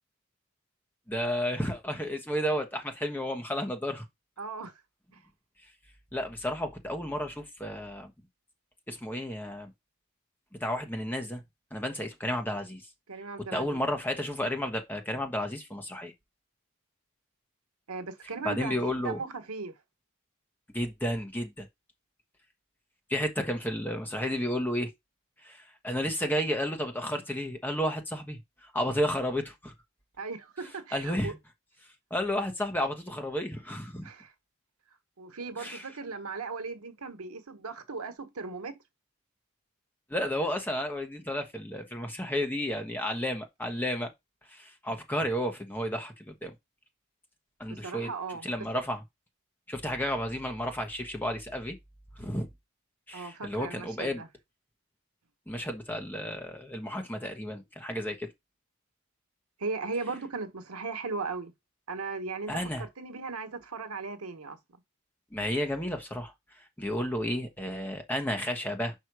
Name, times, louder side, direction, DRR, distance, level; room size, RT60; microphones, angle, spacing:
voice 1, 1.1-4.0 6.1-8.1 8.9-9.7 10.6-11.4 11.7-12.8 13.5-16.1 18.4-19.2 20.7-21.7 23.1-24.9 25.4-29.7 30.9-31.4 32.1-34.1 35.6-35.9 40.1-44.1 44.5-46.5 47.6-48.1 48.4-49.0 49.7-51.8 52.2-52.5 53.1-54.2 55.5-58.3 62.5-62.8 65.3-68.9, equal, 10° left, 1.1 m, -32 dB
voice 2, 4.4-4.7 5.1-5.2 13.1-13.8 17.9-19.7 30.2-31.3 34.0-34.3 35.2-38.8 47.7-48.5 53.1-54.3 59.6-61.5 61.9-64.6, right 4 dB, 85° right, 1.2 m, -37 dB
5.4 x 4.7 x 4.7 m
head